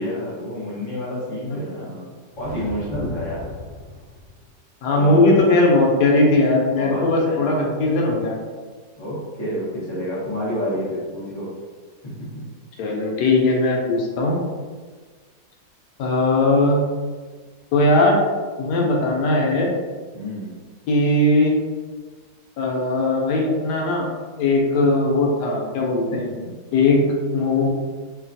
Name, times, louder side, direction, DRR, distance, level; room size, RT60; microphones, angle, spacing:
voice 1, 0.0-3.6 4.9-5.3 6.8-7.7 9.0-11.5 12.8-12.9 20.1-20.5, left 1 dB, 20° left, -8 dB, 0.7 m, -29 dB
sound 1, 2.3-4.5, left 2 dB, 80° right, 1.4 m, -37 dB
voice 2, 4.8-8.3 12.8-14.4 16.0-16.8 17.7-18.2 18.6-19.7 20.9-21.5 22.6-24.1 24.4-26.3 26.7-27.1 27.3-27.7, left 2 dB, 85° left, -1 dB, 1.2 m, -19 dB
3.2 x 2.2 x 2.5 m, 1.4 s
omnidirectional pair, 1.7 m